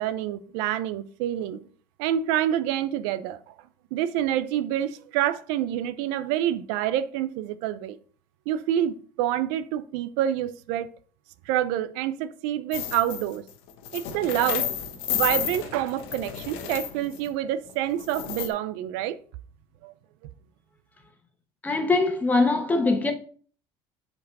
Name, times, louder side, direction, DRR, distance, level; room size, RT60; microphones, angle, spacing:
voice 1, 0.0-1.6 2.0-3.5 3.9-8.0 8.5-10.9 11.5-13.4 13.9-14.7 15.1-19.2 19.8-19.9, right 11 dB, 90° right, 0.6 m, -27 dB
sound 1, 12.7-13.3 13.7-17.3 18.0-18.5, left 10 dB, 80° left, 1.0 m, -31 dB
voice 2, 21.6-23.1, left 3 dB, 15° left, 1.2 m, -22 dB
7.8 x 4.6 x 4.1 m
cardioid pair, 140°, 10 cm